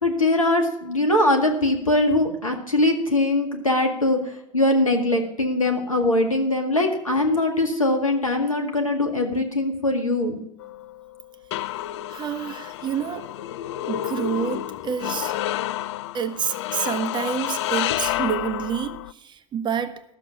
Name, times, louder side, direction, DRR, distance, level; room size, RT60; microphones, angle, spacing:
voice 1, 0.0-4.2 4.5-10.4, left 1 dB, 90° left, 1.9 m, -21 dB
sound 1, 10.6-19.1, left 13 dB, 60° left, 0.4 m, -30 dB
voice 2, 12.1-13.3 13.9-15.3 16.1-20.0, right 7 dB, 25° right, 1.0 m, -28 dB
12.5 x 7.3 x 7.2 m
figure-of-eight pair, 80°, 17 cm